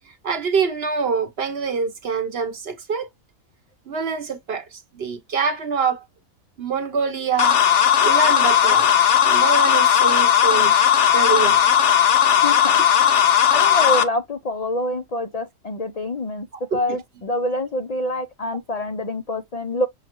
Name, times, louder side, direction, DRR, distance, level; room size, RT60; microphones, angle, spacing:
voice 1, 0.2-3.1 3.9-6.0 6.6-7.6 8.0-8.9 9.2-10.7 11.1-11.7 16.7-16.8, right 5 dB, 50° right, 0.9 m, -25 dB
sound 1, 7.4-14.0, left 9 dB, 60° left, 1.0 m, -16 dB
voice 2, 12.4-19.9, left 1 dB, 80° left, 0.3 m, -26 dB
6.5 x 2.3 x 2.9 m
omnidirectional pair, 1.5 m